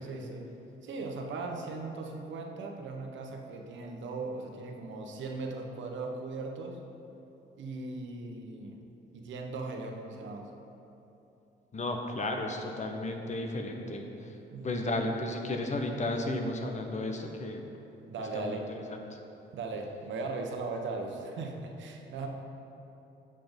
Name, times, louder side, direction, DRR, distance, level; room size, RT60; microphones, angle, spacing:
voice 1, 0.0-0.6 0.8-6.8 7.6-8.8 9.1-10.5 14.5-14.9 18.1-18.6 19.5-22.3, right 3 dB, 70° right, 3 dB, 1.0 m, -38 dB
voice 2, 11.7-14.3 14.6-17.7 18.3-18.8, left 2 dB, 35° left, 3 dB, 1.0 m, -33 dB
7.7 x 5.9 x 5.3 m, 2.9 s
cardioid pair, 90°, 20 cm